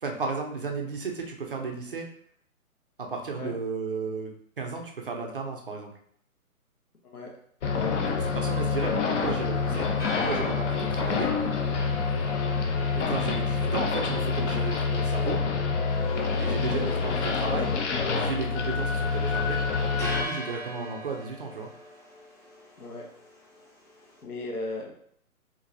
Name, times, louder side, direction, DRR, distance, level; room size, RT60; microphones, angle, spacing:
voice 1, 0.0-2.1 3.0-5.9 8.0-9.9 10.2-11.3 13.0-15.4 16.4-17.7 18.1-19.6 20.0-21.7, right 4 dB, 40° right, 1 dB, 0.4 m, -34 dB
sound 1, 7.6-20.2, left 5 dB, 55° left, 0.6 m, -27 dB
sound 2, 7.7-24.2, equal, 30° left, 0.9 m, -45 dB
voice 2, 24.2-24.9, left 2 dB, 80° left, 0 dB, 1.1 m, -36 dB
3.9 x 2.5 x 2.6 m, 0.65 s
hypercardioid pair, 145°, 44 cm